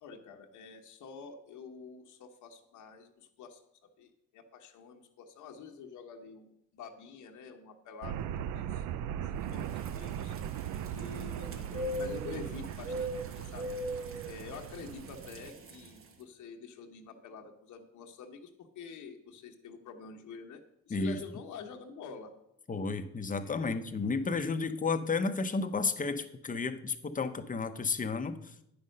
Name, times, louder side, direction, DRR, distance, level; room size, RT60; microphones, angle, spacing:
voice 1, 0.0-8.2 8.5-8.9 9.1-10.4 10.9-13.1 13.4-13.8 14.2-20.6 20.9-22.3 23.6-23.7, left 5 dB, 80° left, 3 dB, 1.1 m, -47 dB
sound 1, 8.0-15.5, right 10 dB, 80° right, 0.5 m, -39 dB
sound 2, 9.5-16.1, equal, 45° right, 1.2 m, -41 dB
voice 2, 22.7-28.4, left 4 dB, 25° left, 9 dB, 0.8 m, -32 dB
9.5 x 5.5 x 6.5 m, 0.79 s
cardioid pair, 90°, 30 cm